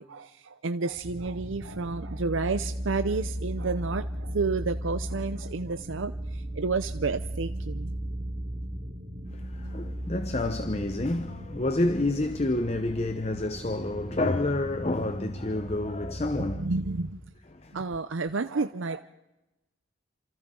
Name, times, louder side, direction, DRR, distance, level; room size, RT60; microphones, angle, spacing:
voice 1, 0.0-7.9 16.6-17.2 17.7-19.0, right 4 dB, 75° right, 0.6 m, -31 dB
sound 1, 1.0-17.0, equal, 55° right, 3.8 m, -36 dB
voice 2, 9.3-16.7 17.5-17.7, left 2 dB, 30° left, 0.8 m, -29 dB
29.5 x 27.0 x 3.8 m
head